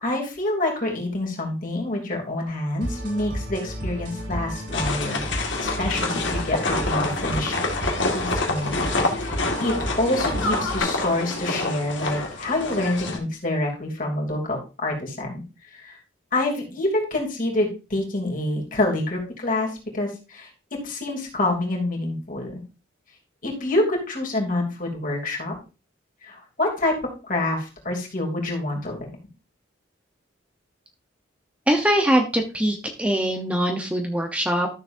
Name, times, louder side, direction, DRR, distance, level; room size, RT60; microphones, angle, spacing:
voice 1, 0.0-5.2 5.6-15.4 15.7-16.0 16.3-20.5 20.8-22.6 23.4-25.5 26.2-27.0 27.2-29.1, left 1 dB, 45° left, 0 dB, 2.9 m, -27 dB
sound 1, 2.8-10.8, equal, 60° right, 3.9 m, -32 dB
sound 2, 4.7-13.2, left 2 dB, 75° left, 1.8 m, -27 dB
voice 2, 31.7-34.7, equal, 5° right, 3 dB, 0.9 m, -22 dB
13.0 x 6.9 x 2.7 m, 0.31 s
head